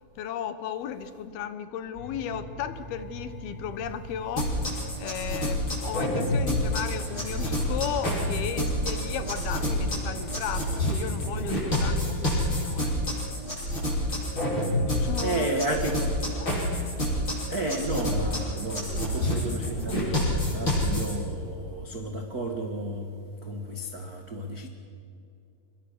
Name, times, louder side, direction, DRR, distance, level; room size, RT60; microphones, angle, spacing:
voice 1, 0.2-12.9 14.7-15.8 16.4-16.6, left 9 dB, 75° left, 11 dB, 3.0 m, -35 dB
sound 1, 1.9-13.1, right 2 dB, 25° right, 6.6 m, -41 dB
sound 2, 4.4-21.1, left 1 dB, 25° left, 8.5 m, -28 dB
voice 2, 15.2-16.0 17.5-23.1 23.4-24.7, right 1 dB, 60° right, 3 dB, 0.9 m, -32 dB
28.5 x 22.5 x 6.8 m, 2.6 s
omnidirectional pair, 4.6 m